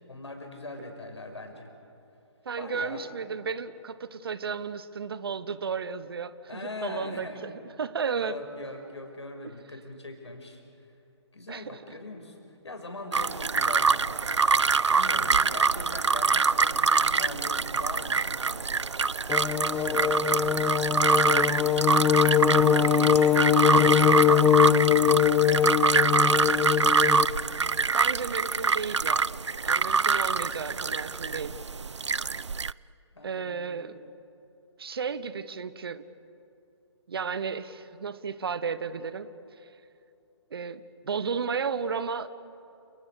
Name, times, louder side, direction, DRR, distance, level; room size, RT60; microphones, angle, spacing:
voice 1, 0.1-1.7 2.6-3.1 6.5-7.5 8.2-10.6 11.3-14.2 14.9-19.3 19.7-20.7 21.0-21.7 22.5-24.5 25.5-26.3 33.1-33.9, left 2 dB, 70° left, 5 dB, 5.7 m, -41 dB
voice 2, 2.4-7.5 7.8-8.3 11.5-11.8 27.9-29.3 29.6-31.6 33.2-34.1 34.8-36.0 37.1-39.3 40.5-42.3, right 5 dB, 55° right, 14 dB, 1.4 m, -33 dB
sound 1, 13.1-32.7, right 5 dB, 75° right, 0.5 m, -25 dB
sound 2, 19.3-27.3, left 10 dB, 10° left, 0.6 m, -22 dB
30.0 x 29.0 x 6.7 m, 2.9 s
figure-of-eight pair, 135°, 15 cm